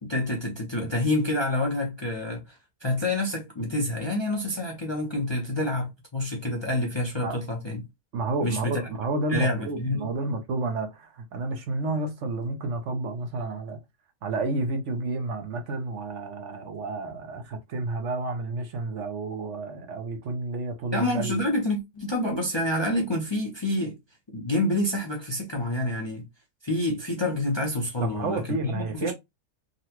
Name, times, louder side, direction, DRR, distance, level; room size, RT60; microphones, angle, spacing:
voice 1, 0.0-2.6 2.8-7.9 8.4-8.8 9.3-10.1 20.9-24.0 24.3-26.2 26.6-29.1, left 1 dB, 25° left, 0.6 m, -28 dB
voice 2, 8.1-13.8 14.2-21.4 28.0-29.1, right 3 dB, 65° right, 1.0 m, -30 dB
3.8 x 2.2 x 2.8 m
omnidirectional pair, 1.4 m